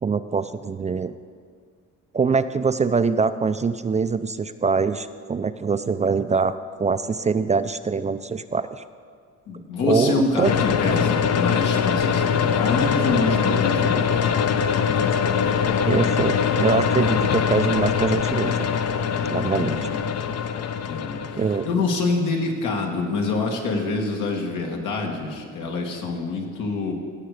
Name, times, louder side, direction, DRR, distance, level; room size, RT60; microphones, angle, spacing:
voice 1, 0.0-1.1 2.1-8.8 9.8-10.5 15.9-18.7 19.3-19.8 21.4-21.8, right 5 dB, 25° right, 12 dB, 0.4 m, -23 dB
voice 2, 9.5-14.2 19.3-20.0 20.8-21.4 21.6-26.9, left 3 dB, 85° left, 1 dB, 1.9 m, -26 dB
sound 1, 10.4-21.7, left 7 dB, 55° left, 0.7 m, -22 dB
16.5 x 6.6 x 4.9 m, 2.1 s
cardioid pair, 90°, 30 cm